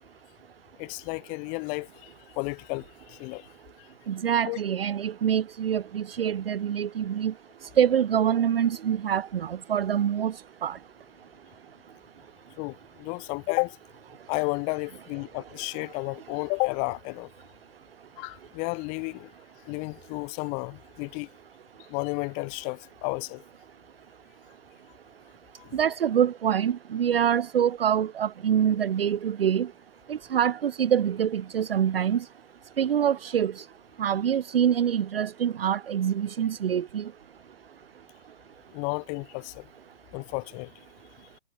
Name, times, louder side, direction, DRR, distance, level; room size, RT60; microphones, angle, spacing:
voice 1, 0.8-2.1 2.4-3.5 4.5-4.6 12.6-13.8 14.3-17.3 18.2-19.3 19.7-21.3 21.9-23.4 25.6-25.8 38.7-39.7 40.1-40.7, left 35 dB, 25° left, 0.9 m, -32 dB
voice 2, 4.1-7.3 7.8-10.3 10.6-10.8 25.7-29.7 30.1-32.2 32.8-33.6 34.0-37.1, right 9 dB, 65° right, 0.7 m, -25 dB
figure-of-eight pair, 120°, 31 cm